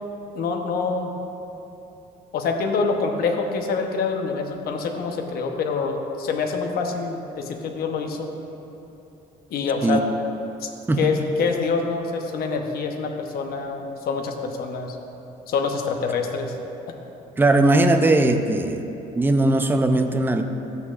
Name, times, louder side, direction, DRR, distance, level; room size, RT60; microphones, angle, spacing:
voice 1, 0.3-1.1 2.3-8.3 9.5-10.0 10.6-10.7 11.0-14.9 15.5-16.5, left 4 dB, 65° left, 4 dB, 0.9 m, -26 dB
voice 2, 17.4-18.9 19.2-20.4, right 2 dB, 10° right, 6 dB, 0.5 m, -19 dB
13.0 x 8.2 x 2.5 m, 2.9 s
cardioid pair, 110°, 17 cm